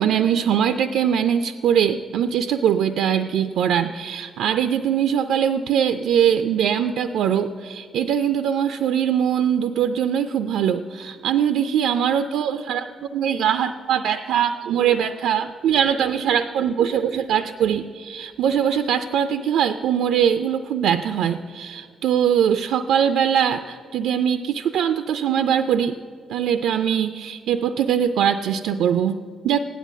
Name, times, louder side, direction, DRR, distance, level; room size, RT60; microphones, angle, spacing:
voice 1, 0.0-26.0 26.3-29.6, right 8 dB, 70° right, 11 dB, 0.4 m, -22 dB
15.5 x 10.0 x 7.4 m, 2.2 s
hypercardioid pair, 40°, 0 cm